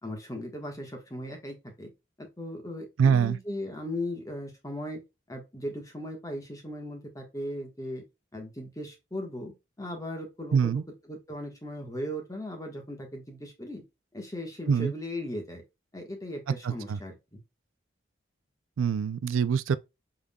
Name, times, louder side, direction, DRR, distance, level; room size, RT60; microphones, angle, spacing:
voice 1, 0.0-1.9 2.2-5.0 5.3-8.0 8.3-10.8 11.1-13.8 14.1-15.6 15.9-17.4, left 1 dB, 15° left, 1.3 m, -38 dB
voice 2, 3.0-3.4 10.5-10.8 14.7-14.9 16.6-17.0 18.8-19.8, right 7 dB, 85° right, 0.4 m, -24 dB
5.5 x 3.6 x 2.2 m
head